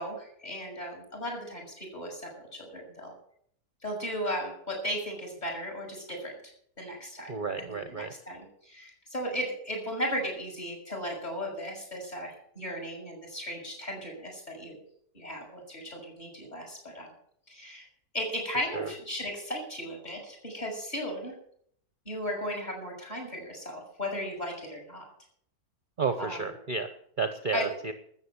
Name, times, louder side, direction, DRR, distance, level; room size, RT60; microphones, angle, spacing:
voice 1, 0.0-3.1 3.8-6.3 6.8-14.8 15.1-17.1 17.5-17.9 18.1-21.3 22.0-25.1 26.2-26.5 27.5-27.6, equal, 30° left, 0 dB, 6.6 m, -36 dB
voice 2, 7.3-8.1 18.7-18.9 26.0-27.9, right 5 dB, 40° right, 9 dB, 1.0 m, -32 dB
13.5 x 8.2 x 9.7 m, 0.65 s
omnidirectional pair, 1.5 m